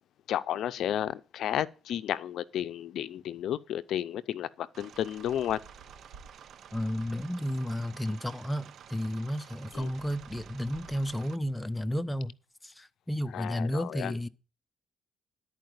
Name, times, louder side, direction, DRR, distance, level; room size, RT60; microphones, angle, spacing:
voice 1, 0.3-5.6 9.7-9.9 13.3-14.2, left 11 dB, 75° left, 0.5 m, -32 dB
sound 1, 4.7-11.4, right 8 dB, 65° right, 0.5 m, -51 dB
sound 2, 4.9-7.5 8.5-8.6 8.8-11.5, right 4 dB, 85° right, 1.8 m, -55 dB
voice 2, 6.7-12.3 12.6-14.3, equal, 10° left, 0.6 m, -32 dB
11.5 x 4.7 x 7.9 m
cardioid pair, 90°, 0 cm